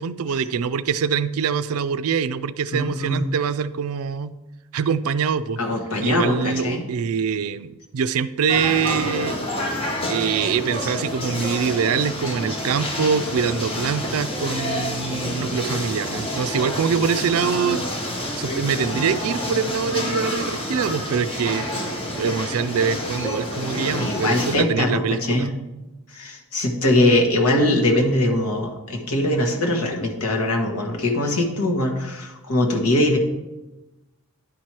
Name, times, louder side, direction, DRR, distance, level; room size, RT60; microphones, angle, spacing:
voice 1, 0.0-4.3 4.7-5.6 6.0-9.4 10.1-17.8 18.4-21.7 22.1-25.5, right 6 dB, 70° right, 13 dB, 0.4 m, -24 dB
voice 2, 2.7-3.2 5.6-6.9 24.0-25.5 26.1-33.2, left 1 dB, 85° left, 1 dB, 1.3 m, -21 dB
sound 1, 8.5-24.6, left 1 dB, 25° left, 1.0 m, -28 dB
10.5 x 4.7 x 4.4 m, 1.0 s
head